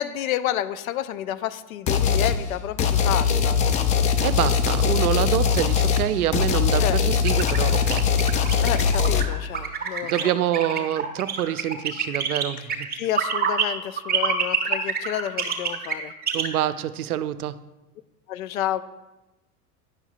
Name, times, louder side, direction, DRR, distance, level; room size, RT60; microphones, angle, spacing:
voice 1, 0.0-4.1 6.8-7.0 8.6-10.3 12.6-12.7 13.0-16.1 18.3-18.8, left 11 dB, 65° left, 13 dB, 0.6 m, -30 dB
sound 1, 1.9-2.4 2.8-9.3, left 6 dB, 20° left, 0.3 m, -21 dB
voice 2, 4.2-8.1 10.0-12.9 16.3-17.6, right 11 dB, 75° right, 15 dB, 0.6 m, -26 dB
sound 2, 7.2-13.6 14.0-16.5, right 6 dB, 20° right, 1.2 m, -26 dB
10.5 x 6.9 x 2.3 m, 1.0 s
figure-of-eight pair, 80°, 45 cm